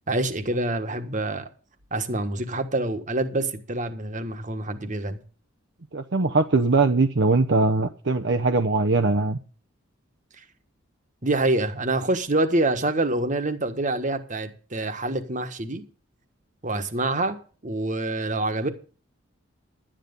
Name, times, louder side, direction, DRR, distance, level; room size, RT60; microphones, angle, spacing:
voice 1, 0.1-1.5 1.9-5.2 11.2-15.8 16.6-17.4 17.6-18.7, right 2 dB, 35° right, 1.4 m, -26 dB
voice 2, 5.9-9.4, right 3 dB, 55° right, 0.8 m, -21 dB
12.0 x 10.0 x 5.4 m
head